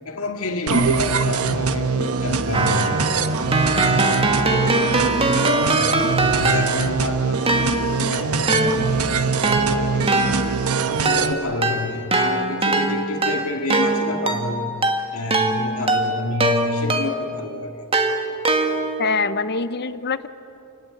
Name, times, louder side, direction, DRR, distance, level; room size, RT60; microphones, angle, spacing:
voice 1, 0.1-3.0 3.3-10.5 11.0-14.7 15.1-17.7, left 3 dB, 65° left, 2 dB, 2.1 m, -29 dB
sound 1, 0.7-11.3, right 5 dB, 75° right, 1.1 m, -23 dB
Keyboard (musical), 2.5-7.0 7.5-17.4 17.9-19.1, right 2 dB, 25° right, 1.7 m, -22 dB
voice 2, 19.0-20.3, left 4 dB, 50° left, 12 dB, 0.9 m, -24 dB
28.5 x 20.0 x 8.5 m, 2.7 s
head